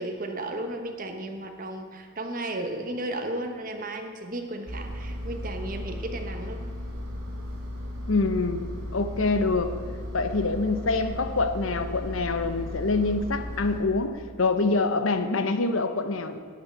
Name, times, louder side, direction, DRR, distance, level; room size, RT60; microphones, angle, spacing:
voice 1, 0.0-6.6 14.6-14.7, right 1 dB, 40° right, 5 dB, 1.1 m, -34 dB
Engine, 4.7-13.8, left 1 dB, 70° right, 2.7 m, -36 dB
voice 2, 8.1-8.7 8.9-9.7 10.1-16.4, left 3 dB, 70° left, 9 dB, 0.8 m, -25 dB
11.0 x 5.6 x 8.8 m, 2.1 s
head